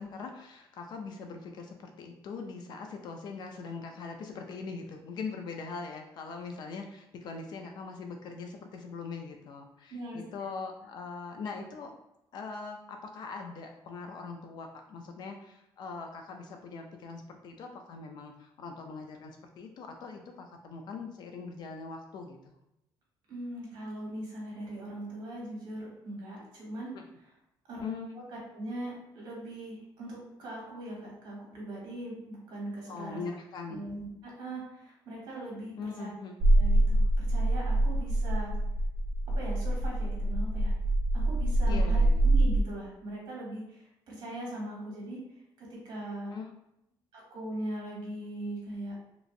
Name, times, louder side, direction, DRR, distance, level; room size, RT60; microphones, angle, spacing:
voice 1, 0.0-11.9 12.3-22.5 26.9-27.0 27.8-28.1 32.9-33.9 35.8-36.4 41.7-42.2 46.3-46.5, left 4 dB, 50° left, 4 dB, 0.3 m, -41 dB
voice 2, 9.9-10.2 23.3-26.9 27.7-27.9 28.3-33.2 33.7-36.1 36.5-38.5 39.3-40.7 41.1-45.2 45.6-46.3 47.1-49.0, right 1 dB, 50° right, -3 dB, 1.2 m, -40 dB
sound 1, 36.4-42.6, right 1 dB, 90° right, 0.4 m, -25 dB
2.9 x 2.5 x 2.5 m, 0.84 s
cardioid pair, 160°, 9 cm